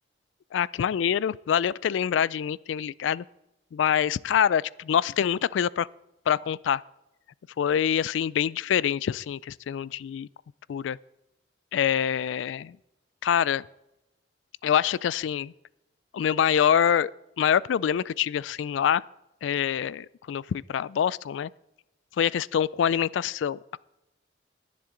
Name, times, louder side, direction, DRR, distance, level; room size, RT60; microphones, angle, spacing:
voice 1, 0.5-3.2 3.7-5.9 6.3-6.8 7.6-10.3 10.7-11.0 11.7-12.8 13.2-13.6 14.6-15.5 16.1-17.1 17.4-19.0 19.4-21.5 22.2-23.8, left 8 dB, 85° left, 0.3 m, -25 dB
20.5 x 7.4 x 3.8 m
head